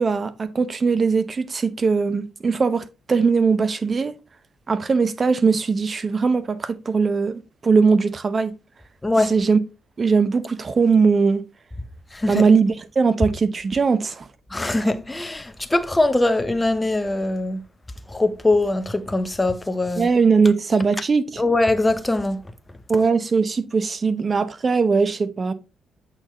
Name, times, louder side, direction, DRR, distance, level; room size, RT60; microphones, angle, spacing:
voice 1, 0.0-4.1 4.7-8.5 9.2-9.6 10.0-11.4 12.3-14.3 20.0-21.4 22.9-25.5, right 5 dB, 40° right, 0.8 m, -20 dB
voice 2, 9.0-9.3 12.1-12.5 14.5-17.6 18.1-20.1 21.4-22.4, left 2 dB, 20° left, 0.9 m, -22 dB
8.1 x 4.2 x 3.9 m
hypercardioid pair, 45°, 0 cm